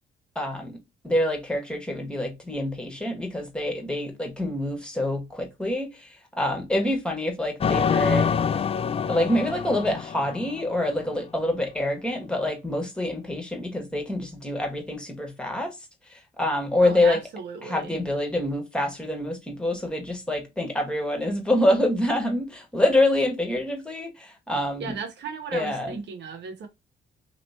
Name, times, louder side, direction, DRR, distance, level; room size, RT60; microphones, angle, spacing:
voice 1, 0.3-0.8 1.0-8.3 9.1-15.7 16.1-17.2 17.6-24.9 25.5-26.0, left 1 dB, 5° left, 1.3 m, -26 dB
sound 1, 7.6-11.0, left 7 dB, 30° left, 0.4 m, -26 dB
voice 2, 16.8-17.9 24.8-26.7, right 5 dB, 60° right, 1.0 m, -35 dB
3.0 x 2.9 x 4.2 m
cardioid pair, 90°, 20 cm